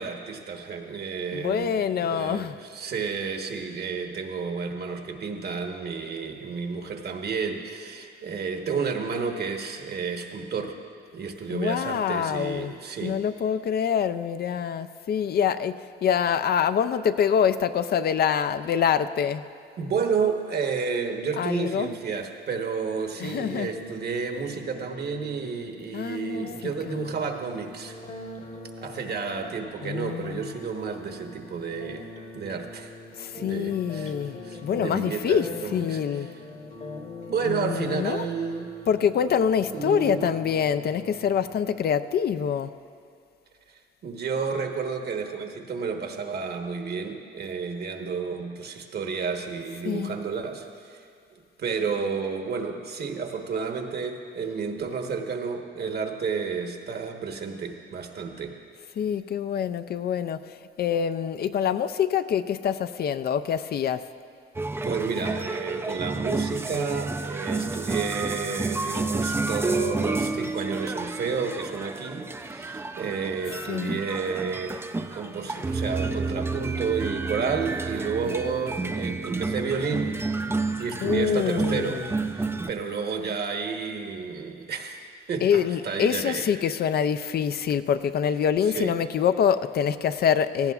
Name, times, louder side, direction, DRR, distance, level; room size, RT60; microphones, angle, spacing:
voice 1, 0.0-10.8 11.1-13.2 19.8-28.0 28.8-32.1 32.3-32.9 33.4-34.1 34.4-36.0 37.3-38.7 39.7-40.3 43.7-51.0 51.3-58.6 64.8-74.8 75.1-80.1 80.8-86.4 88.7-88.9, right 5 dB, 55° right, 4 dB, 1.2 m, -31 dB
voice 2, 1.3-2.5 11.5-12.7 13.0-19.4 21.4-21.9 23.2-23.7 25.9-27.1 29.8-30.4 33.2-36.3 37.4-38.3 38.9-42.7 49.8-50.2 59.0-64.0 73.7-74.0 81.0-82.1 85.4-90.7, left 8 dB, 55° left, 11 dB, 0.4 m, -25 dB
sound 1, 23.1-42.1, left 2 dB, 35° left, 1.1 m, -43 dB
sound 2, 64.5-82.7, right 3 dB, 10° right, 0.4 m, -30 dB
17.5 x 14.5 x 2.4 m, 2.4 s
cardioid pair, 90°, 20 cm